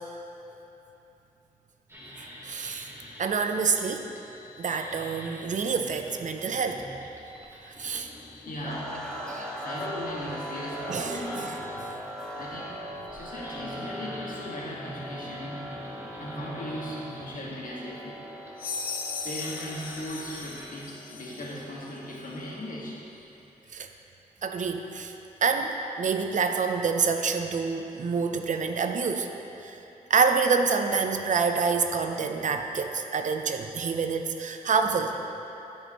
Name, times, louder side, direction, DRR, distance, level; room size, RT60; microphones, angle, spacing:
sound 1, 1.9-20.7, left 1 dB, 15° right, 1.3 m, -47 dB
voice 1, 2.2-2.9 3.2-4.1 4.6-6.9 7.7-8.1 9.3-9.5 10.9-11.6 11.9-12.0 23.7-23.9 24.4-25.1 25.4-29.3 29.6-29.8 30.1-35.3, right 5 dB, 60° right, 6 dB, 0.6 m, -27 dB
voice 2, 8.4-9.0 9.6-11.6 12.4-12.8 13.1-15.8 16.2-18.2 19.2-23.0, left 1 dB, 65° left, -5 dB, 1.7 m, -38 dB
sound 2, 8.6-22.7, equal, 5° left, 0.8 m, -40 dB
sound 3, 18.6-21.6, left 5 dB, 90° left, 0.6 m, -37 dB
12.5 x 5.5 x 3.0 m, 3.0 s
cardioid pair, 90°, 15 cm